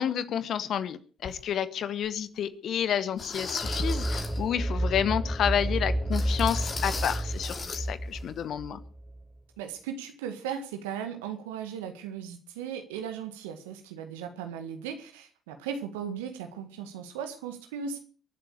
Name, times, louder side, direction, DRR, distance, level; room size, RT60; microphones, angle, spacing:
voice 1, 0.0-8.8, left 9 dB, 60° left, 14 dB, 1.2 m, -30 dB
sound 1, 1.2-1.4 2.0-2.1 3.2-4.4 6.1-7.8 8.1-8.3 8.7-8.8, left 4 dB, 45° left, 3.1 m, -37 dB
sound 2, 3.6-9.2, right 1 dB, ahead, 1.5 m, -31 dB
voice 2, 9.6-18.0, right 7 dB, 80° right, 6 dB, 1.8 m, -37 dB
23.0 x 7.9 x 6.6 m, 0.42 s
hypercardioid pair, 45°, 0 cm